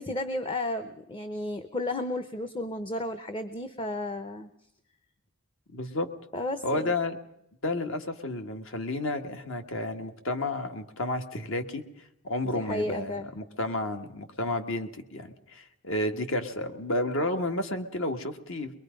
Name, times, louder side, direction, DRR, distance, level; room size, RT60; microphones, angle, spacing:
voice 1, 0.0-4.5 6.3-6.9 12.4-13.3, left 1 dB, 25° left, 11 dB, 0.7 m, -33 dB
voice 2, 5.7-6.1 6.6-7.2 7.6-11.8 12.2-18.7, left 1 dB, 65° left, 6 dB, 1.8 m, -31 dB
23.0 x 22.5 x 5.2 m, 0.78 s
head